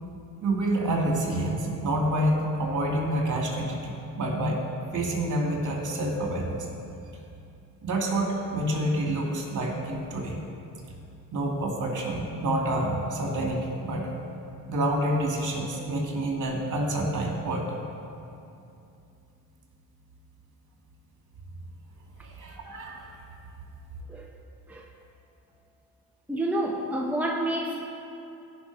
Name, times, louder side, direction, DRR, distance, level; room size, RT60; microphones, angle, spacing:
voice 1, 0.4-4.6 4.9-6.8 7.8-10.4 11.3-14.1 14.7-17.7 22.2-23.1, right 1 dB, 50° right, -1 dB, 2.6 m, -28 dB
voice 2, 26.3-27.8, right 1 dB, 5° right, -1 dB, 1.0 m, -28 dB
16.0 x 5.9 x 4.8 m, 2.7 s
cardioid pair, 90°, 39 cm